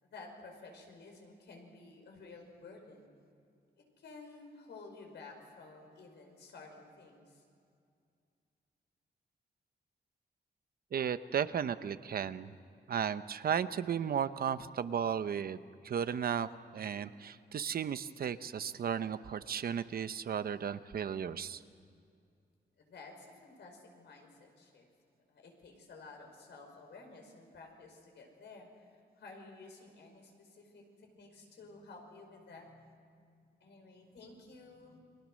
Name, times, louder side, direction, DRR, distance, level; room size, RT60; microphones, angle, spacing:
voice 1, 0.0-3.1 3.8-7.4 22.8-24.9 25.3-35.0, left 3 dB, 90° left, 3 dB, 5.5 m, -53 dB
voice 2, 10.9-12.5 12.9-21.6, right 8 dB, 60° right, 12 dB, 0.8 m, -35 dB
30.0 x 24.5 x 6.4 m, 2.3 s
wide cardioid pair, 160°, 18 cm